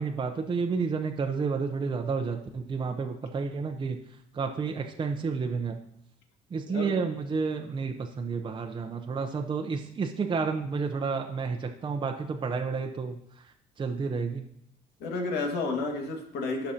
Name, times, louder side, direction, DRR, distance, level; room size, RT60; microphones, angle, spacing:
voice 1, 0.0-4.0 4.3-5.8 6.5-14.5, right 5 dB, 30° right, 4 dB, 0.7 m, -31 dB
voice 2, 15.0-16.7, left 3 dB, 75° left, 2 dB, 1.9 m, -31 dB
15.5 x 5.9 x 2.8 m, 0.74 s
cardioid pair, 110°, 17 cm